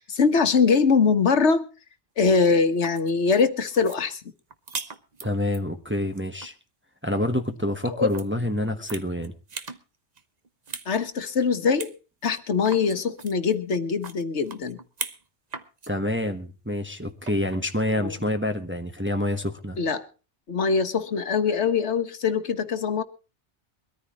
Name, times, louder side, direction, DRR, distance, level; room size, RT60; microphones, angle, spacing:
voice 1, 0.0-1.7 2.2-4.2 7.9-8.1 10.9-11.9 12.2-14.8 18.0-18.1 19.8-20.1 20.5-23.0, left 5 dB, 75° left, 1.5 m, -22 dB
sound 1, 2.6-5.6 6.0-6.5 8.1-8.3 8.6-9.8 10.2-10.9 11.2-11.3 11.8-11.9 12.2-15.2 15.5-15.9 17.2-17.6, right 4 dB, 40° right, 1.1 m, -38 dB
voice 2, 5.2-6.5 7.0-9.3 15.9-19.8, left 1 dB, 10° right, 1.2 m, -27 dB
22.5 x 14.0 x 3.0 m
omnidirectional pair, 1.2 m